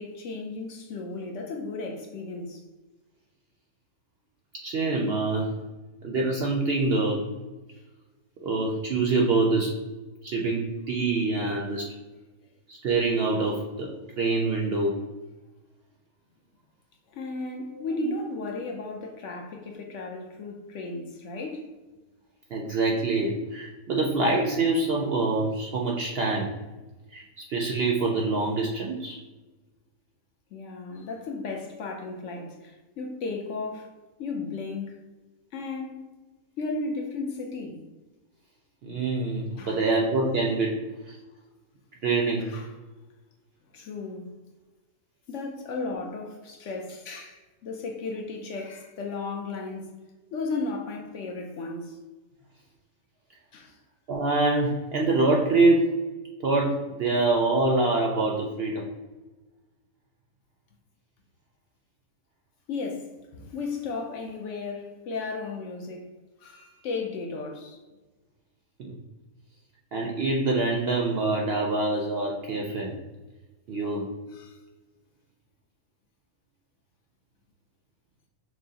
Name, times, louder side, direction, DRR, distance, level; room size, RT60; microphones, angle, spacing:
voice 1, 0.0-2.6 17.1-21.6 30.5-35.0 35.5-36.2 36.6-37.8 39.6-39.8 42.4-42.7 43.7-44.3 45.3-49.9 50.3-52.0 53.5-53.7 62.7-66.1 66.4-67.8 74.3-74.6, left 3 dB, 65° left, 0.8 m, -35 dB
voice 2, 4.6-5.5 6.0-7.2 8.4-9.7 10.2-11.9 12.7-14.9 17.7-17.8 22.5-26.5 27.1-29.2 38.8-40.8 41.1-41.2 42.0-42.5 54.1-56.0 56.4-58.8 68.8-69.0 69.9-72.9 73.7-74.1, right 3 dB, 65° right, 0.6 m, -25 dB
6.1 x 2.0 x 2.7 m
omnidirectional pair, 1.5 m